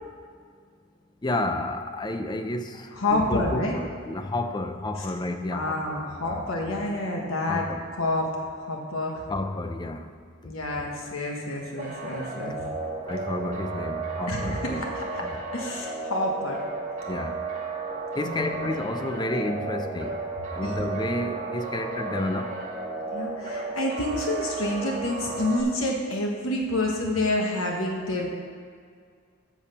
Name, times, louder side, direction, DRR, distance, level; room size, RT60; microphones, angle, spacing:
voice 1, 1.2-6.4 7.5-7.8 9.3-10.0 10.4-10.5 13.1-14.8 15.2-15.4 17.1-17.3 18.2-20.2 20.5-22.5, left 1 dB, 20° left, 7 dB, 0.5 m, -31 dB
voice 2, 2.9-3.7 5.0-5.1 5.5-7.6 8.0-8.3 8.6-9.3 10.4-12.6 14.3-15.2 15.5-16.6 18.2-18.7 20.6-20.8 23.1-28.4, left 1 dB, 90° left, 0 dB, 1.2 m, -28 dB
sound 1, 11.8-25.6, right 3 dB, 35° right, 1.6 m, -33 dB
8.7 x 6.4 x 6.9 m, 2.1 s
head